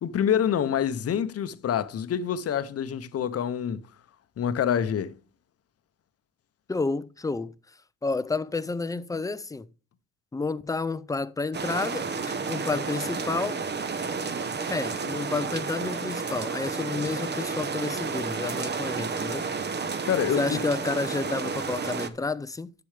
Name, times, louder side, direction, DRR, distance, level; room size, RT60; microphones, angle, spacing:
voice 1, 0.0-3.8 4.4-5.2 20.0-20.6, left 8 dB, 50° left, 0.8 m, -26 dB
voice 2, 6.7-7.5 8.0-9.7 10.3-13.6 14.7-19.4 20.4-22.7, left 3 dB, 10° left, 0.4 m, -30 dB
sound 1, 11.5-22.1, right 5 dB, 35° right, 0.9 m, -31 dB
10.0 x 6.9 x 3.3 m
cardioid pair, 90°, 30 cm